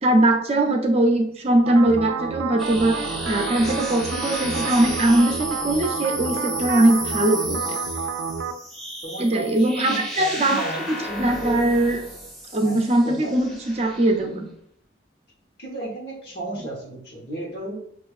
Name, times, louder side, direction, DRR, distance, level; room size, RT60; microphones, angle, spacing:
voice 1, 0.0-7.8 9.2-10.6 11.2-12.0 12.5-14.5, right 1 dB, 35° right, 3 dB, 0.5 m, -21 dB
sound 1, 1.7-8.5, right 5 dB, 90° right, 0.4 m, -30 dB
sound 2, 2.6-14.2, equal, ahead, 0.8 m, -33 dB
voice 2, 9.0-11.6 12.6-12.8 13.0-13.3 15.6-17.8, right 1 dB, 60° left, -2 dB, 1.1 m, -33 dB
6.0 x 2.4 x 2.4 m, 0.67 s
head